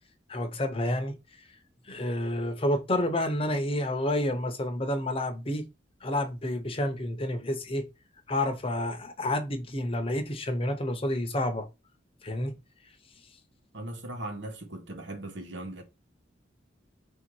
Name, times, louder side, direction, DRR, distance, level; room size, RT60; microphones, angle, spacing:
voice 1, 0.3-1.1 1.9-5.6 6.0-7.9 8.3-11.7 12.2-12.5, left 1 dB, 30° left, 0.7 m, -29 dB
voice 2, 13.7-15.8, right 1 dB, 75° right, 1.0 m, -38 dB
3.3 x 2.8 x 4.6 m
head